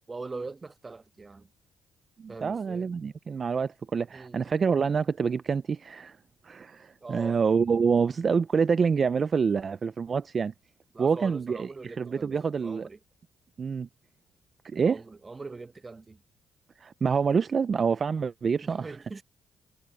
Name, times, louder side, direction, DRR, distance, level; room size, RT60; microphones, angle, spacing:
voice 1, 0.1-1.5 2.3-2.9 4.1-4.4 7.0-7.4 10.9-12.3 12.6-13.0 14.9-16.2 18.6-19.2, right 3 dB, 25° right, 1.3 m, -41 dB
voice 2, 2.2-6.2 6.4-10.5 11.0-12.9 13.6-13.9 14.6-15.0 16.8-19.0, right 5 dB, 40° right, 0.4 m, -27 dB
cardioid pair, 90°, 0 cm